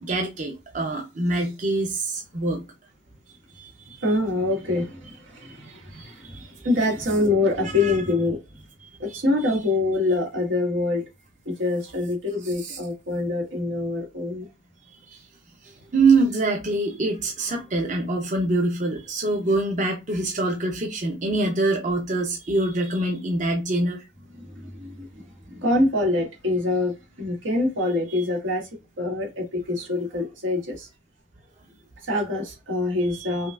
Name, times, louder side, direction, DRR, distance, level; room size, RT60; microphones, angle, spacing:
voice 1, 0.0-2.6 3.5-4.0 5.5-6.7 7.8-8.0 9.1-9.2 12.6-12.8 15.1-15.2 15.6-24.0 28.1-28.2 33.1-33.3, right 2 dB, 40° right, 0.7 m, -25 dB
voice 2, 4.0-8.4 9.0-11.0 11.4-14.5 24.3-28.7 29.0-30.9 32.0-33.5, left 2 dB, 90° right, 1.7 m, -25 dB
5.3 x 2.4 x 2.4 m
head